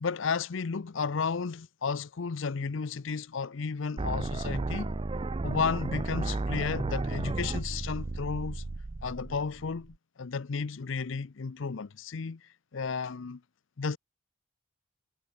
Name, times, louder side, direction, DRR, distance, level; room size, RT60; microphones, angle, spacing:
voice 1, 0.0-5.0 5.4-8.6 9.0-13.4 13.8-14.0, left 5 dB, 65° left, 0.6 m, -33 dB
sound 1, 4.0-9.9, right 2 dB, 25° right, 0.4 m, -33 dB
head